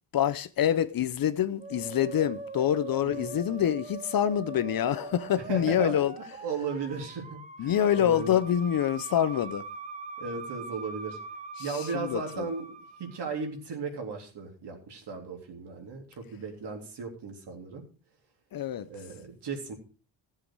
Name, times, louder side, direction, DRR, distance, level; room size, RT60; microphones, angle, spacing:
voice 1, 0.1-6.1 7.6-9.6 11.6-12.5 18.5-18.9, left 10 dB, 50° left, 0.7 m, -26 dB
Musical instrument, 1.6-13.4, right 3 dB, 15° right, 1.3 m, -42 dB
voice 2, 5.5-5.9 6.4-8.3 10.2-11.2 11.6-12.7 13.0-17.8 18.9-19.7, right 4 dB, 60° right, 3.6 m, -36 dB
15.0 x 7.7 x 4.8 m
cardioid pair, 115°, 46 cm